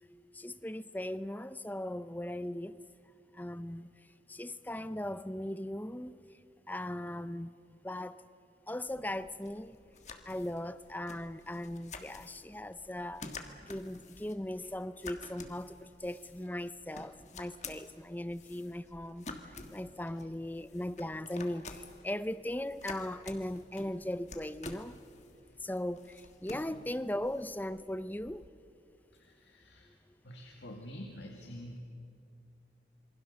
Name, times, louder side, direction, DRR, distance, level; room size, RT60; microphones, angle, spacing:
voice 1, 0.3-2.8 3.3-6.2 6.7-8.2 8.7-9.8 10.2-13.3 13.7-25.0 25.6-28.4 29.8-29.9, left 1 dB, 10° left, 14 dB, 0.6 m, -39 dB
sound 1, 8.9-28.5, left 3 dB, 40° left, 1.6 m, -50 dB
voice 2, 29.1-30.0 30.2-31.8, equal, 80° left, 1 dB, 2.1 m, -47 dB
27.0 x 23.5 x 6.7 m, 2.4 s
head